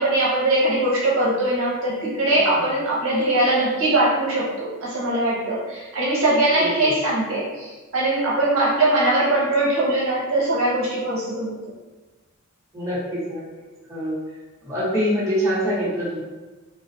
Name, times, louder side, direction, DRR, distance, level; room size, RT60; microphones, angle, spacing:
voice 1, 0.0-11.6, right 1 dB, 65° right, -6 dB, 0.7 m, -21 dB
voice 2, 6.5-6.9 12.7-13.4 13.9-14.2 14.6-16.2, equal, 15° right, -10 dB, 0.8 m, -25 dB
2.4 x 2.3 x 2.5 m, 1.2 s
head